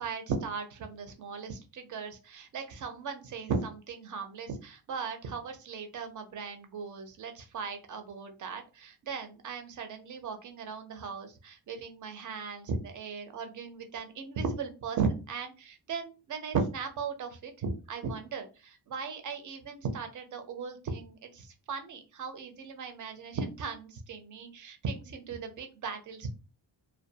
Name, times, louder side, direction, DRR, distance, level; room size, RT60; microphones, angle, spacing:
voice 1, 0.0-26.3, right 5 dB, 45° right, 6 dB, 0.5 m, -37 dB
2.2 x 2.2 x 2.7 m, 0.31 s
wide cardioid pair, 145°, 45 cm